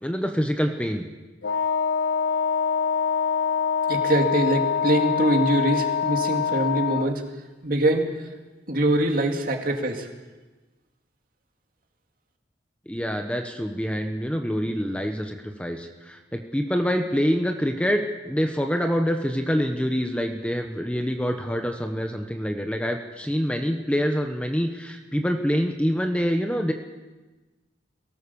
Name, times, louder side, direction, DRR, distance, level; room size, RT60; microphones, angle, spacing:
voice 1, 0.0-1.1 12.9-26.7, equal, 5° left, 4 dB, 1.0 m, -26 dB
Wind instrument woodwind instrument, 1.4-7.2, left 6 dB, 70° left, 0.7 m, -24 dB
voice 2, 3.9-7.2 7.6-8.1 8.7-10.1, right 1 dB, 50° right, 3 dB, 2.5 m, -23 dB
22.5 x 18.0 x 7.1 m, 1.2 s
head